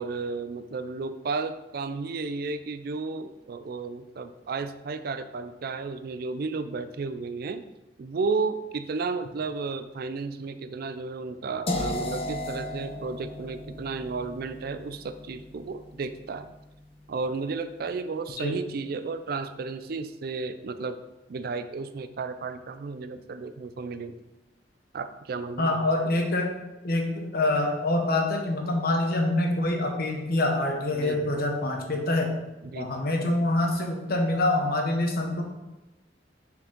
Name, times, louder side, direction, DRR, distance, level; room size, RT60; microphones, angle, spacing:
voice 1, 0.0-7.6 8.0-16.5 17.1-21.0 21.3-24.2 24.9-25.8 30.9-31.4 32.6-33.0, right 4 dB, 60° right, 11 dB, 0.4 m, -33 dB
sound 1, 11.7-17.6, left 1 dB, 35° left, 0.7 m, -36 dB
voice 2, 25.6-26.5 26.8-32.3 32.7-35.4, left 2 dB, 60° left, 3 dB, 1.0 m, -25 dB
6.4 x 4.5 x 3.7 m, 1.0 s
head